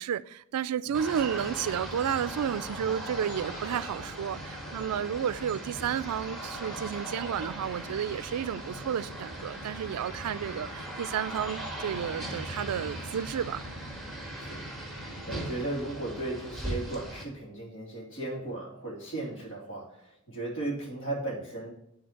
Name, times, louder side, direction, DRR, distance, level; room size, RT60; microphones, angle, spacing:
voice 1, 0.0-13.6, right 8 dB, 80° right, 0.3 m, -32 dB
sound 1, 0.9-17.2, right 1 dB, ahead, 1.7 m, -39 dB
voice 2, 14.9-21.7, right 2 dB, 60° left, 2.9 m, -36 dB
10.0 x 4.0 x 4.4 m
head